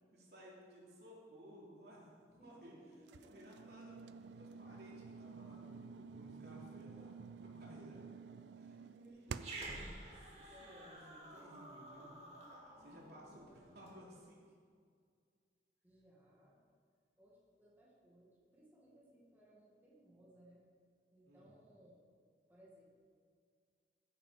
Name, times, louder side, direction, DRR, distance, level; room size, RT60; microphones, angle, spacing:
voice 1, 0.1-2.7 3.2-8.1 8.6-8.8 9.0-9.6 10.0-10.1 10.4-12.1 12.8-14.4 21.2-21.5, equal, 65° right, -4 dB, 3.2 m, -58 dB
voice 2, 2.3-3.5 5.6-6.8 7.9-8.5 8.7-10.2 10.5-11.0 12.9-14.0 15.8-16.6 17.2-20.6 21.1-22.0 22.5-22.9, right 1 dB, 10° right, -6 dB, 2.2 m, -64 dB
sound 1, 3.1-9.7, right 5 dB, 85° right, 0.4 m, -51 dB
Growling, 9.3-14.0, right 2 dB, 40° right, 2.4 m, -51 dB
15.0 x 8.2 x 5.1 m, 2.1 s
head